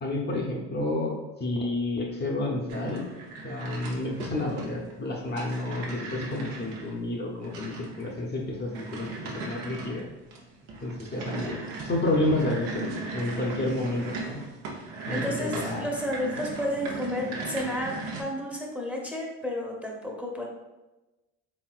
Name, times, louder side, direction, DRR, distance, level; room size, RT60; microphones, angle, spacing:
voice 1, 0.0-3.0 3.4-9.1 9.3-10.0 10.8-14.4 15.1-15.9, left 2 dB, 30° left, 0 dB, 0.7 m, -30 dB
sound 1, 2.7-18.2, right 3 dB, 85° right, 0.8 m, -38 dB
voice 2, 15.1-20.4, left 1 dB, 5° right, -1 dB, 0.7 m, -32 dB
4.2 x 3.4 x 2.4 m, 1.1 s
supercardioid pair, 70°, 34 cm